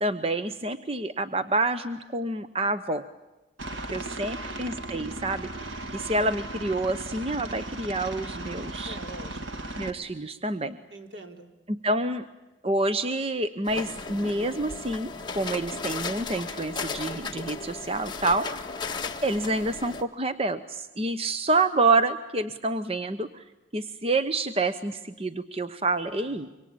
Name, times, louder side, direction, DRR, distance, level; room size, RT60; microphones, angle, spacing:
voice 1, 0.0-3.0 3.9-5.5 5.9-9.0 9.8-10.8 11.7-12.2 12.6-18.6 19.2-23.4 23.7-26.5, right 2 dB, 30° right, 11 dB, 0.9 m, -28 dB
Aircraft, 3.6-9.9, right 2 dB, 90° right, 2.3 m, -37 dB
voice 2, 3.8-4.3 8.8-9.7 10.9-11.5 26.2-26.6, right 1 dB, 75° right, 4 dB, 3.9 m, -45 dB
sound 1, 13.7-20.0, left 4 dB, 25° left, 1.7 m, -35 dB
26.0 x 24.5 x 8.7 m, 1.0 s
head